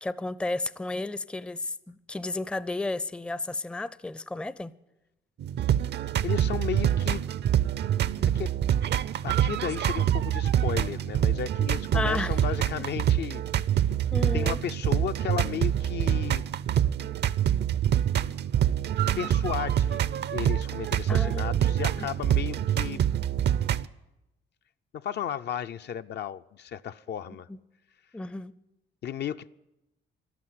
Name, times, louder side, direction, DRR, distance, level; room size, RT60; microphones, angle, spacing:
voice 1, 0.0-4.7 11.9-12.4 12.8-12.9 14.1-14.6 21.1-21.6 22.0-22.1 27.5-27.6 28.1-28.5, left 2 dB, 5° left, 0.4 m, -32 dB
sound 1, 5.4-23.9, right 10 dB, 60° right, 0.5 m, -26 dB
voice 2, 6.2-7.2 8.2-8.6 9.2-13.4 14.3-16.4 19.2-20.0 20.3-23.0 24.9-27.5 29.0-29.5, left 9 dB, 60° left, 0.5 m, -34 dB
12.5 x 12.0 x 9.4 m
cardioid pair, 90°, 20 cm